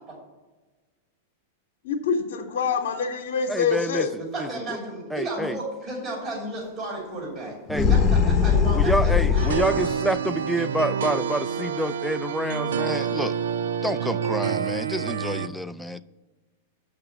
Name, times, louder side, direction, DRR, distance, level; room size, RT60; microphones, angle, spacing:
voice 1, 1.8-4.1, left 6 dB, 70° left, 0 dB, 0.9 m, -25 dB
voice 2, 3.5-4.1 4.4-4.5 5.1-5.6 7.7-7.9 8.7-13.4 13.8-16.0, equal, ahead, 11 dB, 0.3 m, -28 dB
voice 3, 4.3-7.5 7.9-9.9, right 1 dB, 35° right, -3 dB, 2.9 m, -33 dB
sound 1, 7.7-9.9, left 6 dB, 25° left, 0.9 m, -20 dB
sound 2, 9.4-15.5, right 7 dB, 80° right, 0.4 m, -28 dB
6.7 x 5.9 x 7.1 m, 1.3 s
hypercardioid pair, 110°, 0 cm